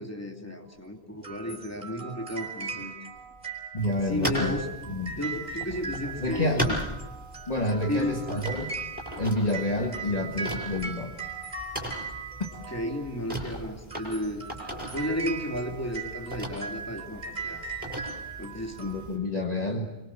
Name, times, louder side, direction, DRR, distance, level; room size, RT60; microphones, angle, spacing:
voice 1, 0.0-2.9 4.1-4.7 5.2-6.8 7.9-8.2 12.7-14.4 14.9-17.6 18.4-19.0, left 1 dB, 15° left, 2 dB, 2.9 m, -33 dB
sound 1, 1.2-13.2 13.8-19.1, right 4 dB, 45° right, 4.3 m, -39 dB
voice 2, 3.7-4.6 4.9-5.2 6.2-6.6 7.5-8.7 9.2-11.1 18.8-19.9, left 1 dB, 40° left, 1 dB, 1.9 m, -29 dB
sound 2, 3.8-19.1, equal, 10° right, 6.5 m, -38 dB
26.0 x 23.0 x 7.5 m, 0.99 s
omnidirectional pair, 1.1 m